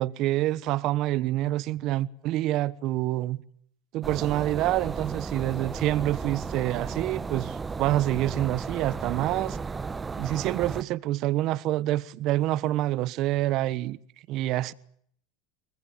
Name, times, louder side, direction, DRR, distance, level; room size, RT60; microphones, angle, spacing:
voice 1, 0.0-3.4 3.9-9.6 10.2-14.0 14.3-14.7, right 15 dB, 55° right, 1.2 m, -27 dB
sound 1, 4.0-10.8, right 4 dB, 20° right, 1.1 m, -34 dB
24.5 x 20.0 x 9.4 m
supercardioid pair, 110°, 0 cm